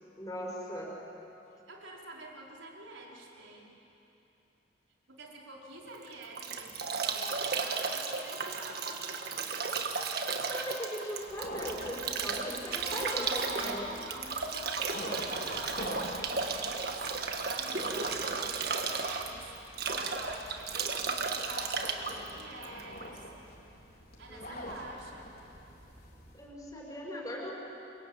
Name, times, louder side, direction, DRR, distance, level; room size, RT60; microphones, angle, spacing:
voice 1, 0.2-0.9 10.5-13.9 24.3-24.7 26.3-27.6, equal, 15° left, -4 dB, 6.1 m, -39 dB
voice 2, 1.5-3.7 5.1-9.1 12.9-23.3 24.2-25.3, right 2 dB, 85° right, -2 dB, 4.9 m, -47 dB
Bathtub (filling or washing) / Drip / Trickle dribble, 5.9-23.2, right 4 dB, 50° right, 1.8 m, -34 dB
sound 1, 11.2-26.5, left 1 dB, 50° left, 4.2 m, -46 dB
29.0 x 23.0 x 8.8 m, 3.0 s
head